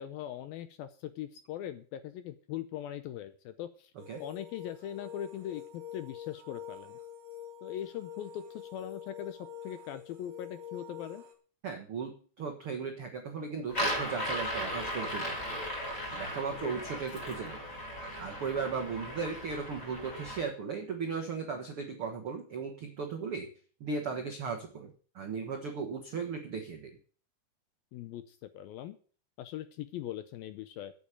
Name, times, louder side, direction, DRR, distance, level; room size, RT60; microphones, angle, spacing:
voice 1, 0.0-3.9 4.2-7.0 7.6-11.2 16.6-16.8 27.9-29.0 29.4-30.9, left 11 dB, 75° left, 11 dB, 2.2 m, -41 dB
sound 1, 4.0-11.3, left 8 dB, 60° right, 4.1 m, -46 dB
voice 2, 11.6-12.1 12.4-15.6 16.1-17.6 18.2-23.5 23.8-26.9, right 5 dB, 75° right, 4 dB, 1.2 m, -36 dB
sound 2, 13.7-20.4, equal, 20° left, 4.8 m, -37 dB
8.5 x 8.5 x 8.6 m, 0.42 s
omnidirectional pair, 4.8 m